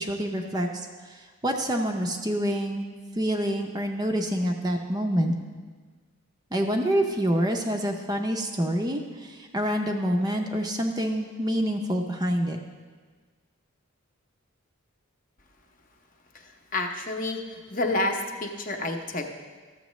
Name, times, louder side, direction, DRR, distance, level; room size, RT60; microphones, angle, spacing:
voice 1, 0.0-2.9 3.1-5.3 6.5-12.6, equal, 20° right, 3 dB, 0.5 m, -27 dB
voice 2, 16.3-19.3, left 2 dB, 40° left, 3 dB, 0.7 m, -29 dB
13.5 x 7.2 x 3.1 m, 1.5 s
head